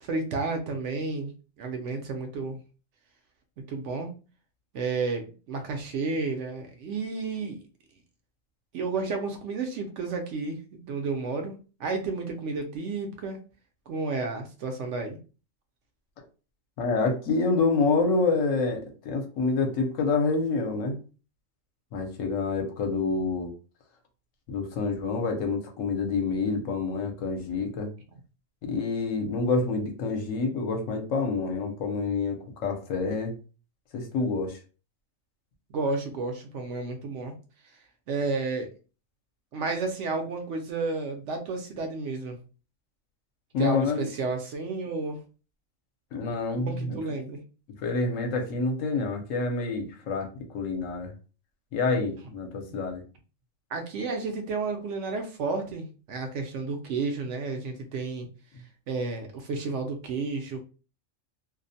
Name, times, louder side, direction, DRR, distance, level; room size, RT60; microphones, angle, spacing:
voice 1, 0.0-2.6 3.6-4.1 4.7-7.6 8.7-13.4 13.9-15.2 35.7-37.3 37.6-37.8 38.1-38.7 39.5-42.4 43.6-45.2 46.5-47.4 53.7-58.3 58.9-60.6, right 3 dB, 70° right, 4 dB, 0.8 m, -31 dB
voice 2, 16.8-21.0 21.9-23.5 24.5-27.9 28.6-33.3 33.9-34.6 43.5-44.1 46.1-47.0 47.8-50.3 50.5-51.1 51.7-53.0, left 4 dB, 70° left, 4 dB, 1.0 m, -27 dB
2.5 x 2.1 x 2.6 m, 0.35 s
omnidirectional pair, 1.4 m